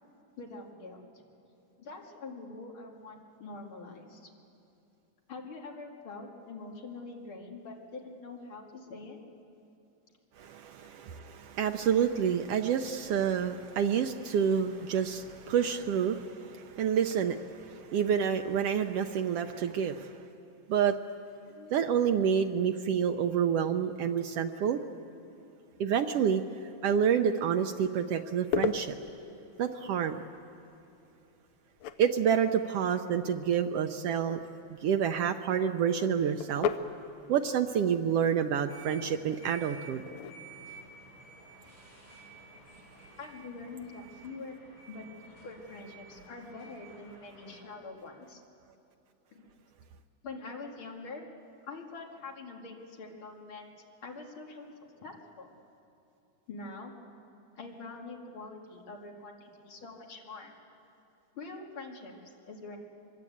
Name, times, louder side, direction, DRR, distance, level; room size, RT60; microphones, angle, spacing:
voice 1, 0.4-1.2 1.8-4.3 5.3-9.2 21.4-21.7 43.2-44.6 44.9-48.4 49.3-49.4 50.2-51.3 51.7-53.7 54.0-55.5 56.5-56.9 57.6-60.6 61.3-62.1 62.5-62.8, left 3 dB, 45° left, 0 dB, 2.9 m, -45 dB
voice 2, 10.4-20.2 20.7-20.9 21.7-24.8 25.8-26.4 26.8-29.0 29.6-30.2 32.0-34.4 34.7-36.7 37.3-40.1, right 8 dB, 80° right, 6 dB, 1.3 m, -28 dB
sound 1, 27.6-42.8, left 7 dB, 75° left, 1.9 m, -41 dB
sound 2, 38.7-47.6, right 3 dB, 45° right, 9.0 m, -52 dB
24.0 x 23.0 x 8.6 m, 2.8 s
omnidirectional pair, 3.5 m